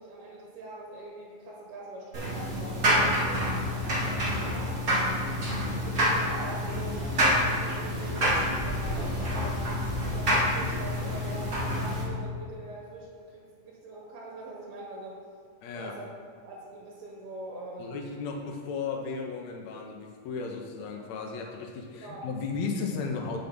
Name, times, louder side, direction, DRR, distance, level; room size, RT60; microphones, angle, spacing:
voice 1, 0.0-4.8 5.7-15.2 15.7-16.1 16.4-18.0 22.0-22.3, right 2 dB, 85° right, -4 dB, 3.3 m, -43 dB
sound 1, 2.1-12.0, equal, 35° right, 1.6 m, -27 dB
voice 2, 15.6-16.0 17.8-23.4, left 4 dB, 85° left, 2 dB, 1.5 m, -35 dB
8.0 x 6.7 x 5.2 m, 2.1 s
omnidirectional pair, 4.3 m